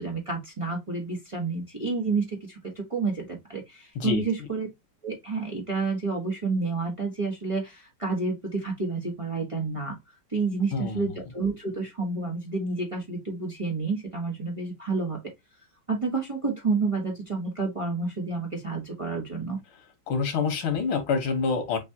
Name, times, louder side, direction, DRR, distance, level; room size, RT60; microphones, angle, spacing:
voice 1, 0.0-4.7 5.0-10.0 10.3-15.2 15.9-19.6, right 3 dB, 20° right, 1.1 m, -29 dB
voice 2, 10.7-11.2 20.1-21.8, left 5 dB, 90° left, 2.1 m, -27 dB
6.9 x 2.6 x 2.8 m
omnidirectional pair, 2.2 m